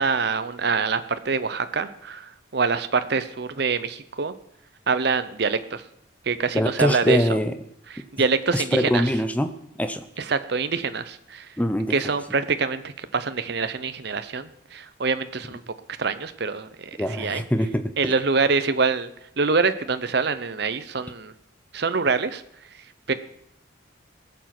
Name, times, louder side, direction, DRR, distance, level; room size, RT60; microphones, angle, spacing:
voice 1, 0.0-4.3 4.9-5.8 6.3-7.4 7.9-9.1 10.2-11.5 11.9-15.6 16.0-17.4 18.0-19.1 19.4-21.3 21.7-22.4 23.1-23.2, right 4 dB, 55° right, 11 dB, 0.7 m, -25 dB
voice 2, 6.5-7.5 8.5-9.5 9.8-10.0 11.6-12.0 17.0-18.1, equal, 5° left, 10 dB, 0.6 m, -23 dB
19.0 x 7.2 x 5.9 m, 0.73 s
head